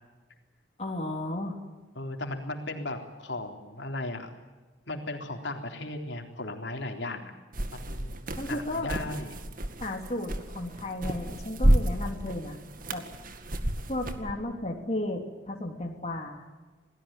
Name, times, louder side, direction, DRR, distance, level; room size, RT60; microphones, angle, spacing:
voice 1, 0.8-1.6 8.4-8.9 9.8-12.6 12.9-13.0 13.9-16.4, left 1 dB, 35° left, 1 dB, 3.3 m, -34 dB
voice 2, 2.0-4.3 4.9-7.3 7.7-9.3, left 2 dB, 70° left, 3 dB, 3.8 m, -36 dB
sound 1, 7.5-14.3, right 1 dB, 45° right, 2.1 m, -30 dB
28.5 x 19.0 x 9.2 m, 1.3 s
head